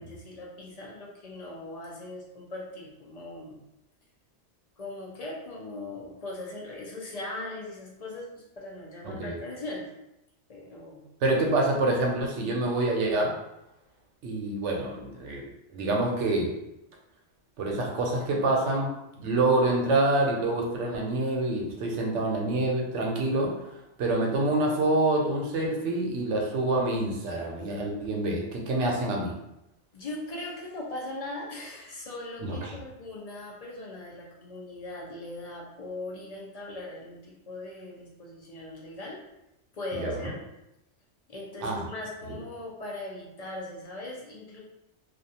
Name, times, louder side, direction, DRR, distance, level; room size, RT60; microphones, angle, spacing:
voice 1, 0.0-3.6 4.8-8.3 8.6-9.9 10.5-11.0 29.9-39.2 39.7-40.4 41.3-44.6, left 2 dB, 45° left, -3 dB, 0.5 m, -39 dB
voice 2, 9.0-9.4 11.2-13.3 14.2-15.4 15.7-16.5 17.6-18.9 19.2-29.3 32.4-32.8 40.0-40.3 41.6-41.8 42.3-42.4, right 2 dB, 80° right, 0 dB, 0.9 m, -27 dB
2.5 x 2.3 x 2.7 m, 0.88 s
omnidirectional pair, 1.2 m